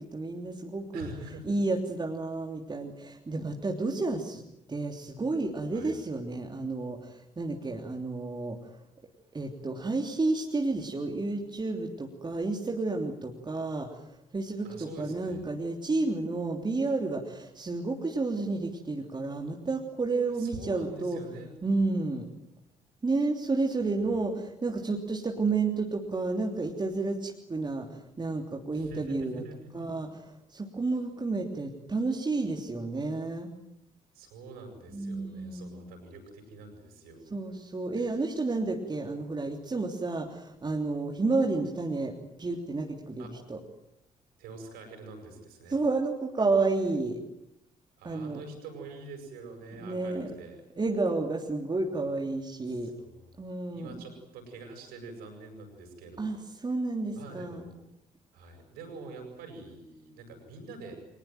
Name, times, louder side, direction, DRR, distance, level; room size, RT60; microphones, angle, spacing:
voice 1, 0.0-1.1 1.4-4.4 4.7-8.8 9.3-21.2 21.6-22.3 23.0-29.4 29.7-33.5 34.9-35.8 37.3-43.6 45.7-47.2 48.0-48.4 49.8-50.3 50.8-52.9 53.4-54.0 56.2-57.7, right 3 dB, 25° right, 2 dB, 3.2 m, -31 dB
voice 2, 0.9-1.6 5.7-6.0 14.6-15.5 20.4-21.5 23.8-23.9 28.7-29.9 34.1-37.4 38.0-38.2 43.2-43.3 44.4-45.8 48.0-50.6 52.7-53.2 53.7-56.4 57.1-57.8 58.3-61.0, right 2 dB, 65° right, 4 dB, 7.9 m, -45 dB
24.5 x 20.0 x 9.3 m, 0.81 s
figure-of-eight pair, 45°, 17 cm